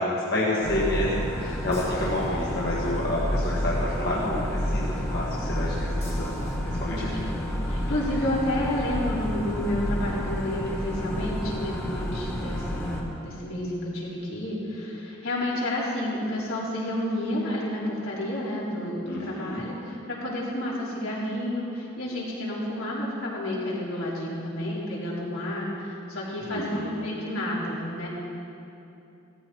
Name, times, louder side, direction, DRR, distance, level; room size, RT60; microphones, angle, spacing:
voice 1, 0.0-6.4 6.6-7.1 19.0-19.7 26.5-26.9, left 1 dB, 50° left, -6 dB, 1.8 m, -29 dB
sound 1, 0.6-13.0, equal, 10° left, 1.6 m, -30 dB
voice 2, 6.9-7.3 7.7-28.1, left 1 dB, 75° left, -6 dB, 4.1 m, -30 dB
17.0 x 14.0 x 4.8 m, 2.8 s
head